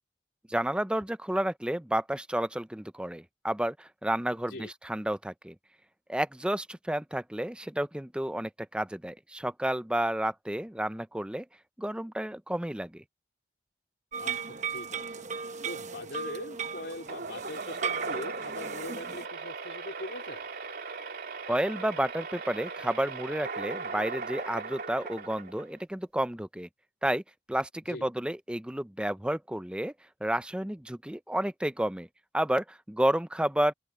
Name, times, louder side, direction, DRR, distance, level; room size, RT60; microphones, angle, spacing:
voice 1, 0.5-5.5 6.1-11.4 11.8-13.0 21.5-26.7 27.0-27.2 27.5-29.9 30.2-32.1 32.3-33.7, right 1 dB, 5° right, 0.5 m, -31 dB
sound 1, 14.1-19.3, right 6 dB, 40° right, 1.0 m, -37 dB
voice 2, 14.7-15.3 15.6-20.5 27.9-28.1, left 1 dB, 65° left, 4.2 m, -42 dB
sound 2, 17.1-25.8, right 4 dB, 55° right, 3.2 m, -38 dB
open air
head